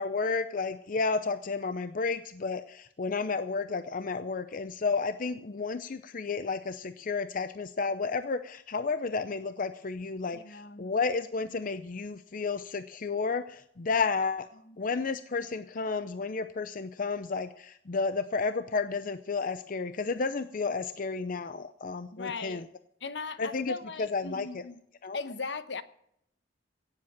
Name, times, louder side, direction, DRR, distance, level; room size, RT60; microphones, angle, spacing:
voice 1, 0.0-14.5 14.8-22.6 23.4-23.7 24.0-24.6 25.0-25.2, left 4 dB, 50° left, 0.6 m, -32 dB
voice 2, 10.3-10.9 14.6-14.8 22.1-22.6 23.0-24.8 25.1-25.8, left 4 dB, 70° left, 1.0 m, -38 dB
17.0 x 7.7 x 7.3 m
head